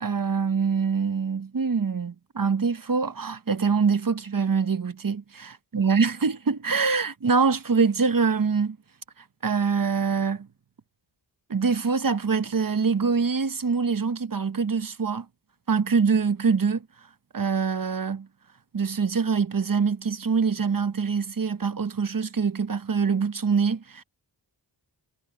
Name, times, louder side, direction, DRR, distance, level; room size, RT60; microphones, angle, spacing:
voice 1, 0.0-8.8 9.4-10.5 11.5-15.3 15.7-16.8 17.3-18.3 18.7-24.0, right 5 dB, 45° right, 1.0 m, -24 dB
wide cardioid pair, 55°, 46 cm